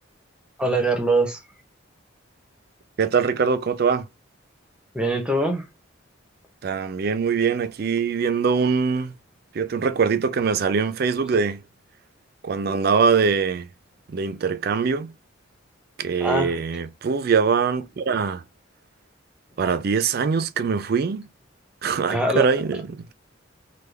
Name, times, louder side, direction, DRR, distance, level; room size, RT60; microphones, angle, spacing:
voice 1, 0.6-1.4 4.9-5.6 16.2-16.6 22.1-22.5, right 1 dB, 5° right, 0.6 m, -22 dB
voice 2, 3.0-4.1 6.6-9.1 9.5-11.6 12.4-13.7 14.1-15.1 16.0-18.4 19.6-21.3 21.8-23.1, right 5 dB, 50° right, 0.4 m, -23 dB
3.4 x 2.2 x 3.2 m
head